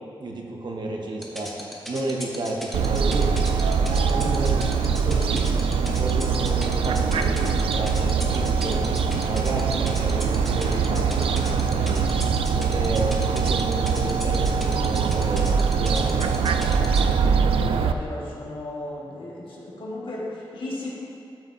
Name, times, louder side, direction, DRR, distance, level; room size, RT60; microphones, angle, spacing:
voice 1, 0.2-1.5 1.9-3.3 3.9-5.4 5.8-8.8 9.2-12.1 12.5-15.5 15.7-16.7, right 2 dB, 55° right, 0 dB, 1.0 m, -32 dB
sound 1, 1.2-17.1, equal, ahead, 1.1 m, -36 dB
Fowl, 2.7-17.9, right 5 dB, 90° right, 0.3 m, -23 dB
voice 2, 17.5-20.9, left 1 dB, 70° left, -5 dB, 1.7 m, -35 dB
12.0 x 5.9 x 2.7 m, 2.5 s
wide cardioid pair, 90°, 9 cm